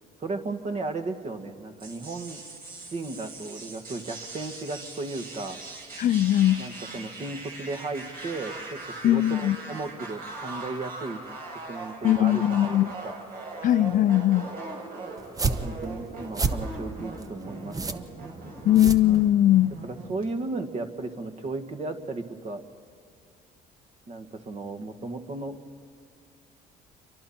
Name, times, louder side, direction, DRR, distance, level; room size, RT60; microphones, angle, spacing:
voice 1, 0.2-2.4 2.9-5.6 6.6-11.2 11.5-13.1 15.4-18.0 19.8-22.6 24.1-25.6, right 3 dB, 40° right, 1.9 m, -35 dB
sound 1, 1.8-20.2, right 3 dB, 65° right, 5.2 m, -40 dB
voice 2, 6.0-6.6 9.0-9.6 12.0-12.9 13.6-14.5 18.7-19.7, left 13 dB, 50° left, 0.4 m, -20 dB
sound 2, 15.2-19.7, right 4 dB, 20° right, 1.0 m, -31 dB
29.0 x 24.0 x 4.4 m
cardioid pair, 110°, 17 cm